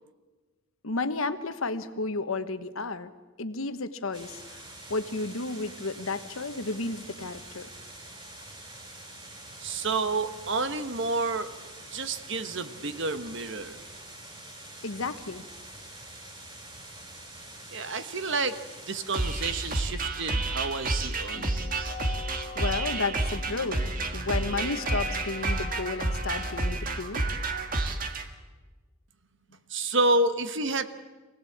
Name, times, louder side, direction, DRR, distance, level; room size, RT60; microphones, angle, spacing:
voice 1, 0.8-3.1 3.4-4.6 4.9-7.7 14.8-15.4 22.5-23.8 24.1-27.3, left 3 dB, 70° left, 10 dB, 1.2 m, -32 dB
sound 1, 4.1-19.9, right 1 dB, 25° right, 4.3 m, -46 dB
voice 2, 9.6-11.5 11.9-13.8 17.7-18.6 18.8-21.6 29.7-30.9, right 2 dB, 55° right, 10 dB, 1.3 m, -29 dB
sound 2, 19.1-28.2, right 2 dB, 40° right, 1.8 m, -30 dB
sound 3, 21.3-26.8, left 5 dB, 35° left, 0.7 m, -42 dB
24.5 x 17.5 x 8.6 m, 1.3 s
head